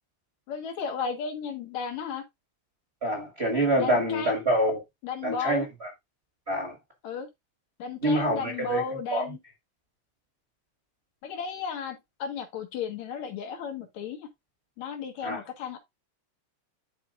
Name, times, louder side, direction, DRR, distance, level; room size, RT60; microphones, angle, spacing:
voice 1, 0.5-2.2 3.8-4.4 5.0-5.7 7.0-7.3 7.8-9.4 11.2-14.3 14.8-15.8, left 6 dB, 70° left, 2.9 m, -34 dB
voice 2, 3.0-4.8 5.2-5.9 6.5-6.8 8.0-8.8 9.1-9.2 15.2-15.4, right 1 dB, 30° right, 1.4 m, -26 dB
11.5 x 4.4 x 2.5 m
omnidirectional pair, 3.4 m